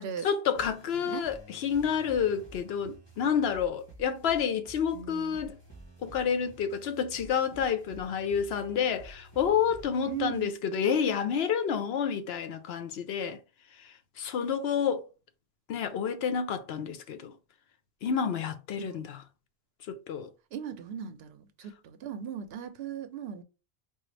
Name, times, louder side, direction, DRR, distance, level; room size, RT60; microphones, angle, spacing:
voice 1, 0.2-5.6 6.0-13.4 14.2-15.1 15.7-17.3 18.0-19.2 19.9-20.3, left 7 dB, 80° left, 0.9 m, -29 dB
sound 1, 0.5-10.5, right 2 dB, 25° left, 1.3 m, -51 dB
voice 2, 0.9-1.3 4.9-5.5 10.1-10.5 18.8-19.1 20.5-23.4, right 8 dB, 80° right, 0.8 m, -38 dB
4.9 x 2.4 x 3.2 m
omnidirectional pair, 1.0 m